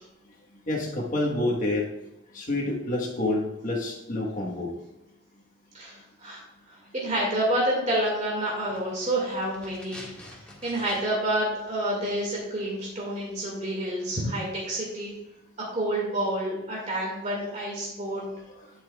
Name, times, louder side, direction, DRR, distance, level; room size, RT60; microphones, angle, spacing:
voice 1, 0.7-1.9 2.3-4.7 18.1-18.2, left 2 dB, 40° left, -2 dB, 1.3 m, -28 dB
voice 2, 5.7-10.0 10.3-15.1 15.7-18.2, right 1 dB, 35° right, -3 dB, 2.0 m, -29 dB
Ripping a spiral bound notebook or a calendar page, 8.5-11.3 11.6-11.7, left 1 dB, 5° left, 1.8 m, -47 dB
9.9 x 8.3 x 2.3 m, 1.0 s
head